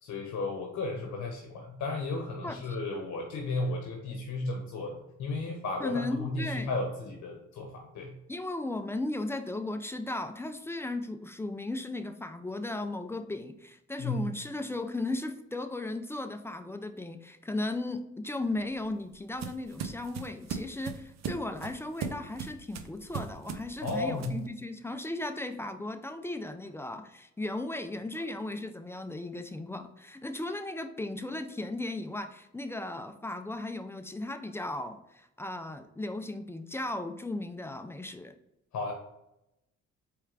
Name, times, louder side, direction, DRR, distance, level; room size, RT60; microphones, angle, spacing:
voice 1, 0.0-8.1 14.0-14.2 23.8-24.4 38.7-38.9, left 2 dB, 70° left, 2 dB, 0.8 m, -34 dB
voice 2, 2.4-2.8 5.8-6.7 8.3-38.3, left 2 dB, 10° left, 8 dB, 0.3 m, -36 dB
sound 1, 18.4-24.5, right 6 dB, 60° right, 0.6 m, -39 dB
4.6 x 3.3 x 2.4 m, 0.85 s
cardioid pair, 90°, 30 cm